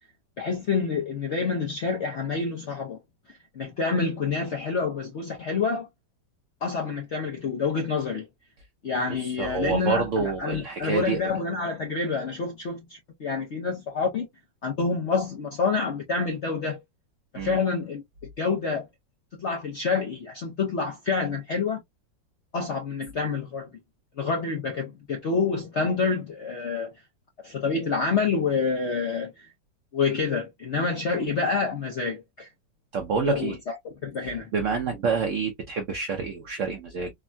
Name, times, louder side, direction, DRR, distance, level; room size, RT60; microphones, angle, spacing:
voice 1, 0.4-3.0 3.5-5.9 6.6-8.3 8.8-14.2 14.6-16.8 17.3-18.0 18.4-18.9 19.4-21.8 22.5-23.7 24.2-26.9 27.4-29.5 29.9-32.5 33.2-33.8 34.0-34.5, left 4 dB, 70° left, 0.6 m, -27 dB
voice 2, 9.4-11.2 17.4-17.6 32.9-33.6 34.2-37.1, right 5 dB, 75° right, 0.7 m, -28 dB
3.6 x 2.2 x 2.3 m
omnidirectional pair, 2.0 m